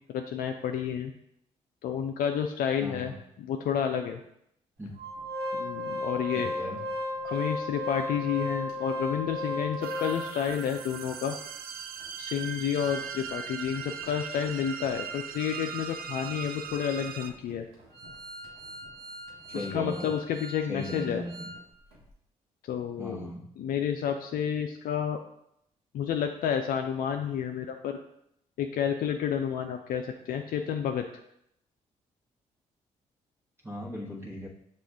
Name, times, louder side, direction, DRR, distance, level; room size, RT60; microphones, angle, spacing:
voice 1, 0.1-1.1 1.8-3.1 3.4-4.2 5.5-6.5 7.2-11.3 12.2-17.7 19.5-21.2 22.7-23.3 23.6-25.2 25.9-28.0 28.6-31.1, left 8 dB, 70° left, 5 dB, 0.4 m, -30 dB
voice 2, 2.8-3.1 4.8-4.9 6.3-6.8 19.5-20.1 20.7-21.5 23.0-23.4 33.6-34.5, left 1 dB, 15° right, -4 dB, 1.1 m, -37 dB
Organ, 5.0-10.5 11.0-11.1 11.4-11.5 12.0-21.6 21.9-22.0, left 1 dB, 85° right, 1.0 m, -37 dB
sound 1, 9.8-17.3, right 7 dB, 70° right, 0.4 m, -39 dB
6.2 x 2.4 x 3.5 m, 0.74 s
supercardioid pair, 55°, 16 cm